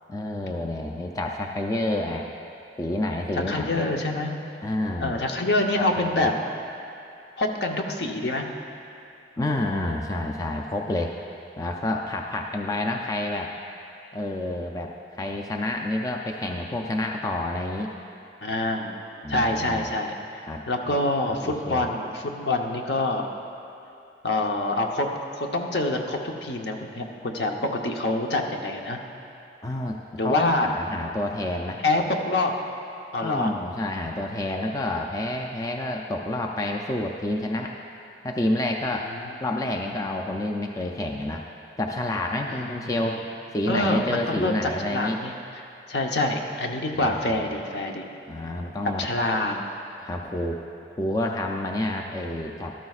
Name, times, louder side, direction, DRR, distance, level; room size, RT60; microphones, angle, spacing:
voice 1, 0.1-2.3 2.8-3.9 4.6-5.2 5.8-6.3 9.4-11.1 11.6-13.5 14.1-17.9 19.2-19.9 20.5-20.6 21.4-21.9 29.6-31.8 33.2-37.7 38.2-39.1 39.4-41.4 41.8-43.2 43.5-45.2 46.9-47.5 48.3-49.1 50.0-50.6 51.0-52.7, left 1 dB, 20° left, 1 dB, 0.4 m, -29 dB
voice 2, 3.5-4.3 5.0-6.3 7.4-8.4 18.4-19.0 19.3-20.1 20.7-23.3 24.2-25.1 25.4-29.0 30.2-30.7 31.8-32.5 33.1-33.5 38.8-39.3 42.5-43.0 43.7-45.3 45.9-48.1 49.0-49.6, left 2 dB, 65° left, 2 dB, 0.9 m, -26 dB
13.5 x 12.5 x 2.4 m, 2.8 s
head